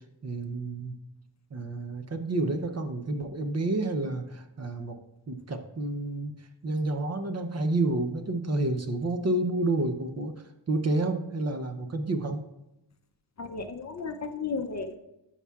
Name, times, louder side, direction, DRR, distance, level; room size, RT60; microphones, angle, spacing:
voice 1, 0.2-1.0 1.5-4.9 5.3-10.3 10.7-12.4, right 2 dB, 35° right, 7 dB, 0.6 m, -29 dB
voice 2, 13.4-15.0, left 4 dB, 40° left, 7 dB, 0.5 m, -34 dB
12.5 x 5.7 x 2.3 m, 0.90 s
wide cardioid pair, 150°, 45 cm